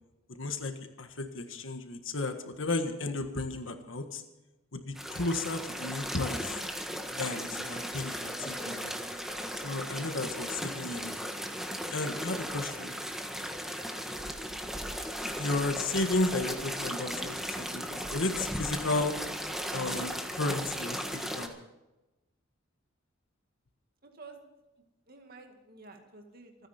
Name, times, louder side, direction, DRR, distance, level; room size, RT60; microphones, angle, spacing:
voice 1, 0.3-4.2 4.7-6.6 7.1-9.0 9.6-11.1 11.9-13.0 15.4-19.2 19.7-21.5, left 2 dB, 65° left, 6 dB, 1.6 m, -33 dB
sound 1, 5.0-21.5, equal, ahead, 1.5 m, -36 dB
voice 2, 24.0-24.5 25.1-26.7, right 3 dB, 50° right, 3 dB, 2.1 m, -51 dB
27.5 x 10.0 x 4.4 m, 1.0 s
head